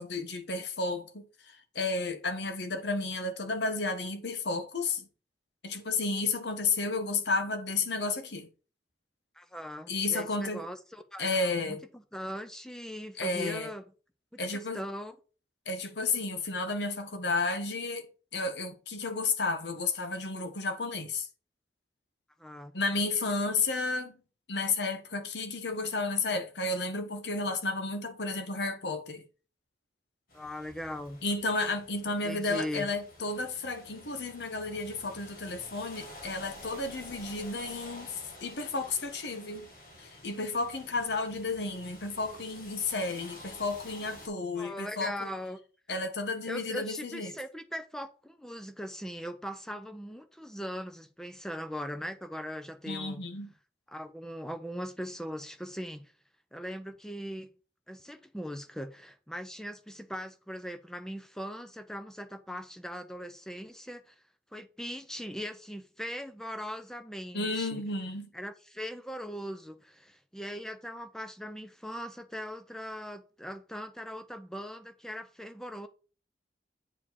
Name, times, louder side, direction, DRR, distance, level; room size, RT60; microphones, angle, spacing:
voice 1, 0.0-5.1 5.6-8.5 9.9-10.6 11.2-11.8 13.2-13.7 14.4-14.8 15.7-18.1 18.3-21.3 22.7-24.1 24.5-29.2 31.2-39.7 40.0-45.3 45.9-47.3 52.9-53.5 67.3-68.3, left 3 dB, 80° left, 1.4 m, -32 dB
voice 2, 9.4-13.8 14.3-15.2 22.4-22.7 30.3-31.2 32.2-32.9 44.6-45.6 46.5-53.2 53.9-56.1 56.5-57.5 57.9-64.1 64.5-67.8 68.3-75.9, equal, 5° left, 0.6 m, -40 dB
sound 1, 30.3-44.3, left 1 dB, 55° left, 3.5 m, -50 dB
8.7 x 4.9 x 4.1 m
head